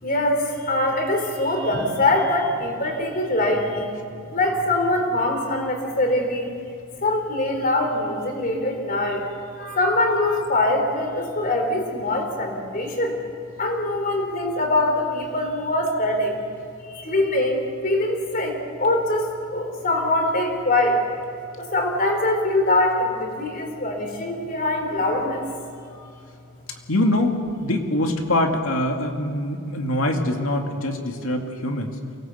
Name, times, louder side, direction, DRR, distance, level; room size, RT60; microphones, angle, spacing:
voice 1, 0.0-3.9 4.3-6.5 7.0-9.3 9.6-13.2 13.6-16.4 16.9-21.0 21.6-25.5 25.9-26.1, left 1 dB, 45° left, 3 dB, 3.8 m, -23 dB
voice 2, 26.9-32.0, left 1 dB, 85° left, 3 dB, 2.3 m, -24 dB
24.0 x 18.0 x 8.0 m, 2.4 s
head